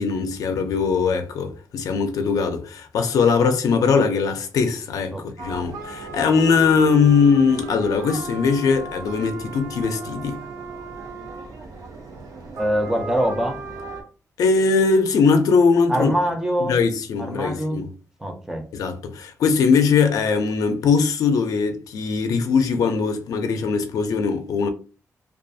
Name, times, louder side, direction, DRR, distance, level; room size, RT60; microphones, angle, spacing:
voice 1, 0.0-10.4 14.4-16.1 16.6-17.9 18.7-24.7, left 5 dB, 90° left, 0.4 m, -20 dB
sound 1, 5.4-14.0, right 3 dB, 85° right, 0.6 m, -36 dB
voice 2, 12.6-13.6 15.9-16.8 17.2-17.8 18.2-18.6, equal, 5° right, 0.4 m, -23 dB
2.3 x 2.3 x 2.6 m
wide cardioid pair, 180°, 6 cm